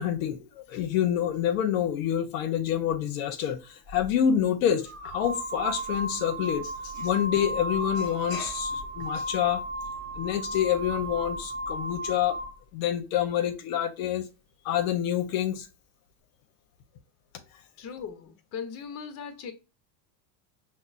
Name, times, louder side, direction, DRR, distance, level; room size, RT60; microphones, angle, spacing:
voice 1, 0.0-9.6 10.2-12.4 12.7-14.3 14.6-15.7, left 10 dB, 70° left, 0.7 m, -27 dB
sound 1, 3.9-4.1 4.9-12.6, right 1 dB, 25° right, 0.8 m, -34 dB
voice 2, 17.8-19.5, left 6 dB, 35° left, 0.8 m, -38 dB
5.4 x 2.1 x 2.3 m
supercardioid pair, 120°, 42 cm